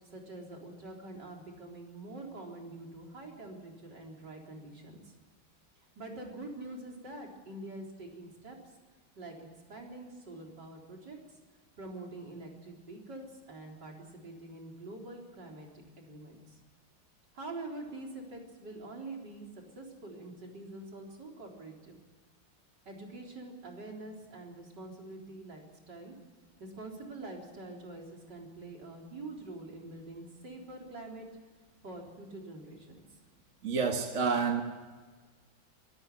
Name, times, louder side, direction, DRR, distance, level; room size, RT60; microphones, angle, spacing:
voice 1, 0.1-5.1 6.0-8.6 9.2-11.2 11.8-15.7 16.0-16.6 17.3-19.5 19.8-22.0 22.9-26.1 26.6-31.3 31.8-33.0, right 2 dB, 60° right, 0 dB, 4.5 m, -45 dB
voice 2, 33.6-34.6, right 5 dB, 40° right, 3 dB, 1.7 m, -29 dB
24.0 x 13.5 x 9.5 m, 1.4 s
omnidirectional pair, 2.1 m